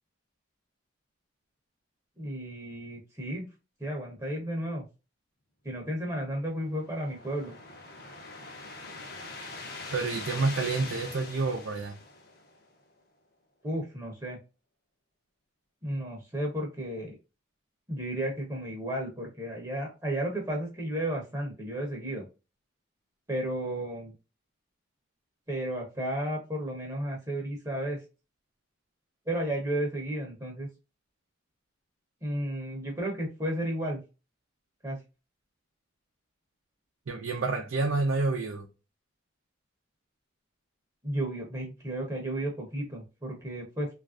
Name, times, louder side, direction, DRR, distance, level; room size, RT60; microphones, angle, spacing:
voice 1, 2.2-3.5 3.8-4.9 5.6-7.5 13.6-14.4 15.8-17.1 17.9-22.2 23.3-24.1 25.5-28.0 29.3-30.7 32.2-34.0 34.8-35.0 41.0-43.9, right 1 dB, 15° right, 0.8 m, -33 dB
sound 1, 6.2-12.7, left 3 dB, 50° left, 0.7 m, -43 dB
voice 2, 9.9-12.0 37.1-38.7, right 3 dB, 85° right, 0.5 m, -29 dB
3.1 x 2.4 x 2.4 m
head